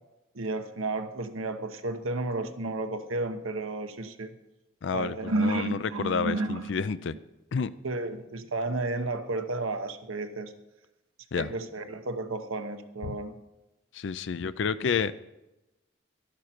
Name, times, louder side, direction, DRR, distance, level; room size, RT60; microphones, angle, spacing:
voice 1, 0.3-4.3 4.9-6.7 7.8-10.5 11.4-13.4, right 2 dB, 85° right, 7 dB, 1.1 m, -32 dB
voice 2, 4.8-7.1 7.5-7.7 11.3-11.5 13.0-13.2 13.9-15.2, left 5 dB, 60° left, 14 dB, 0.4 m, -30 dB
12.5 x 11.5 x 4.4 m, 0.98 s
head